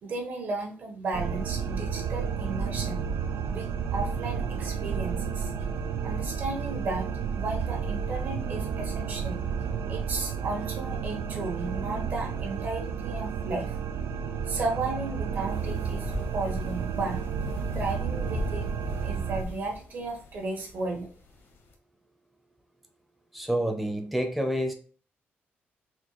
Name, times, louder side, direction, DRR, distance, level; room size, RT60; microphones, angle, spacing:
voice 1, 0.0-3.0 3.5-5.5 6.0-9.4 9.9-13.7 14.5-17.2 17.7-18.7 19.0-21.1, right 3 dB, 50° right, 1 dB, 1.2 m, -34 dB
sound 1, 1.1-19.4, right 6 dB, 90° right, 0.4 m, -31 dB
sound 2, 15.3-21.7, left 2 dB, 65° left, 1.0 m, -41 dB
voice 2, 23.3-24.7, equal, ahead, 4 dB, 0.7 m, -28 dB
4.2 x 2.8 x 3.0 m, 0.42 s
cardioid pair, 145°, 4 cm